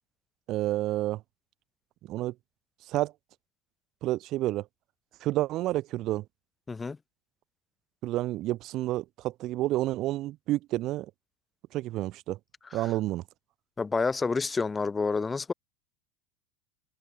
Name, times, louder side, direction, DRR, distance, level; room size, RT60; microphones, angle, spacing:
voice 1, 0.5-1.2 2.1-2.3 2.9-3.1 4.0-4.7 5.2-6.2 8.0-11.1 11.7-12.4 12.7-13.2, right 16 dB, 35° right, 0.3 m, -29 dB
voice 2, 13.8-15.5, left 4 dB, 10° left, 0.8 m, -29 dB
supercardioid pair, 165°, 0 cm